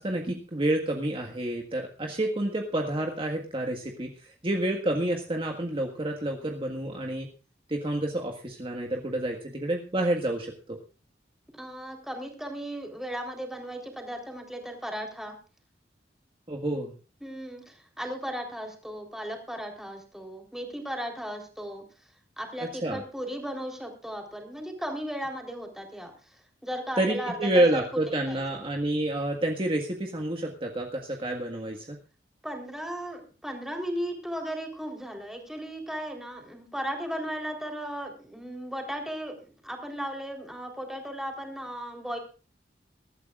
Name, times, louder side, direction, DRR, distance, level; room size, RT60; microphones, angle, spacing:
voice 1, 0.0-7.3 7.7-10.8 16.5-16.9 22.6-23.0 27.0-32.0, right 1 dB, 30° right, 2 dB, 1.7 m, -29 dB
voice 2, 11.5-15.4 17.2-21.8 22.4-26.1 26.6-28.0 28.3-28.6 32.4-42.2, equal, 5° right, 2 dB, 3.8 m, -36 dB
23.0 x 13.0 x 2.5 m, 0.35 s
head